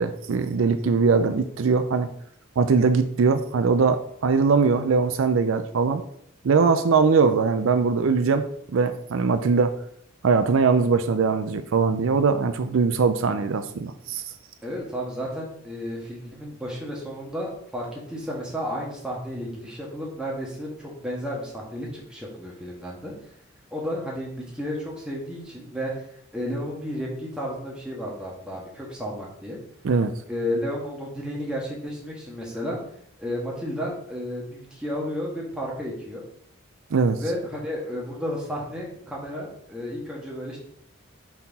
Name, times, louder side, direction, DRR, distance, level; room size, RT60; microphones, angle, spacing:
voice 1, 0.0-2.1 2.6-6.0 6.4-9.7 10.2-14.2 29.8-30.1 36.9-37.2, right 5 dB, 70° right, 9 dB, 0.4 m, -21 dB
voice 2, 14.6-23.1 23.7-26.1 26.3-29.6 30.3-32.8 33.2-36.2 37.2-40.6, equal, 5° right, -4 dB, 1.5 m, -32 dB
5.6 x 4.4 x 4.1 m, 0.66 s
head